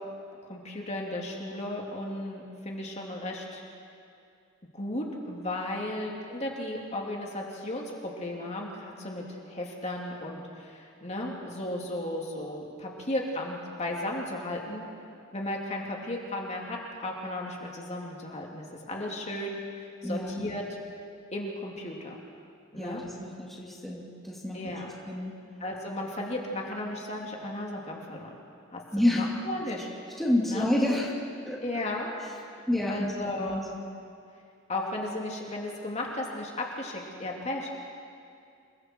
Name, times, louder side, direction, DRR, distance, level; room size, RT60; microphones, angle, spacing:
voice 1, 0.4-3.6 4.7-14.8 15.3-20.6 21.3-22.2 22.7-23.0 24.5-24.9 25.6-28.3 28.7-29.9 30.5-30.7 31.6-32.1 32.5-32.6 32.9-33.7 34.7-37.7, left 1 dB, 30° left, -1 dB, 2.8 m, -35 dB
voice 2, 22.8-24.7 25.1-25.3 28.9-29.3 30.2-31.6 32.2-32.3 32.7-33.1 33.4-33.6, left 1 dB, ahead, -4 dB, 2.6 m, -29 dB
28.5 x 22.0 x 4.6 m, 2.4 s
head